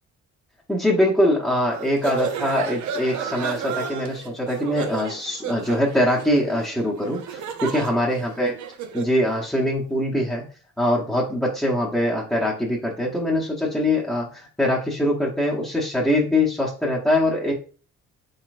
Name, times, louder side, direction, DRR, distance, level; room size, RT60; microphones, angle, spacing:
voice 1, 0.7-8.5 8.9-10.4 10.8-17.5, left 1 dB, 5° left, -6 dB, 0.9 m, -23 dB
sound 1, 1.7-9.2, right 7 dB, 75° right, 0.7 m, -33 dB
4.1 x 3.7 x 2.5 m, 0.36 s
cardioid pair, 90°, 30 cm